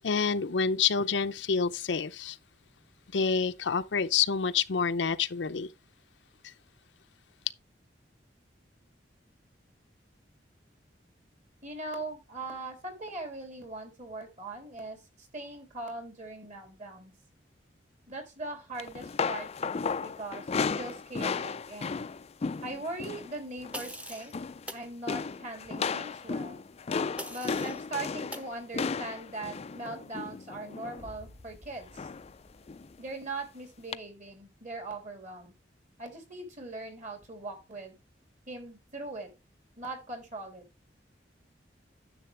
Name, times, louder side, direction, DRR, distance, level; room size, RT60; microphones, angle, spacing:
voice 1, 0.0-2.4 3.1-5.7, left 6 dB, 80° left, 0.6 m, -28 dB
voice 2, 11.6-17.1 18.1-22.0 22.6-24.3 24.7-26.6 27.3-32.1 33.0-35.5 36.0-38.0 38.5-39.3 39.8-40.6, right 2 dB, 45° right, 3.4 m, -40 dB
sound 1, 18.8-23.3 23.6-23.9 24.2-24.7 25.1-31.1 32.0-32.3 32.7-32.9 33.9-34.0, left 5 dB, 35° left, 0.4 m, -34 dB
sound 2, 23.7-24.3 24.7-24.9 27.2-27.8 28.3-28.5, equal, 5° right, 0.9 m, -41 dB
sound 3, 30.9-33.9, left 1 dB, 70° right, 5.1 m, -54 dB
10.5 x 7.2 x 3.3 m
head